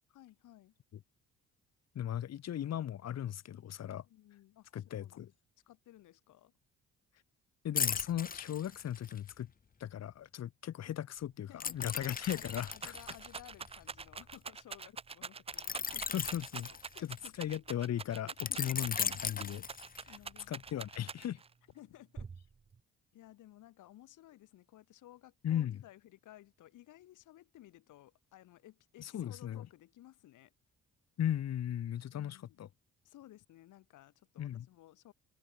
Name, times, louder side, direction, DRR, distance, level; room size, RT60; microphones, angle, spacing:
voice 1, 0.1-0.7 4.0-5.2 5.7-6.5 11.5-11.9 12.3-16.2 16.9-17.5 18.2-18.9 20.1-20.9 21.7-22.3 23.1-30.5 32.1-32.6 33.0-35.1, left 14 dB, 85° left, 5.5 m, -57 dB
voice 2, 1.9-4.0 4.7-5.3 7.6-9.5 9.8-12.9 16.1-19.6 20.5-21.4 25.4-25.8 29.0-29.6 31.2-32.7 34.4-34.7, left 10 dB, 60° left, 1.4 m, -37 dB
sound 1, 7.8-9.3 11.6-14.3 15.5-17.4 18.4-20.2 20.7-20.9, left 6 dB, 30° left, 0.9 m, -38 dB
Rattle, 11.2-11.3 11.6-21.5 22.2-22.8, right 5 dB, 20° right, 0.4 m, -46 dB
open air
cardioid pair, 90°, 30 cm